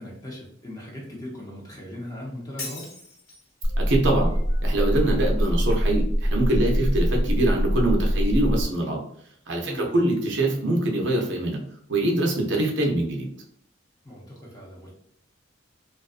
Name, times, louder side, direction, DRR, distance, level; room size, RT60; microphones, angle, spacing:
voice 1, 0.0-2.9 9.6-10.0 14.0-14.9, left 1 dB, 15° left, -3 dB, 0.6 m, -39 dB
Shatter, 2.6-3.6, left 2 dB, 65° left, 1.3 m, -38 dB
sound 1, 3.6-8.6, equal, 85° left, 0.8 m, -23 dB
voice 2, 3.8-4.3 4.6-9.0 9.5-11.6 11.9-13.3, right 1 dB, 60° right, 0 dB, 0.5 m, -24 dB
2.4 x 2.3 x 2.4 m, 0.67 s
head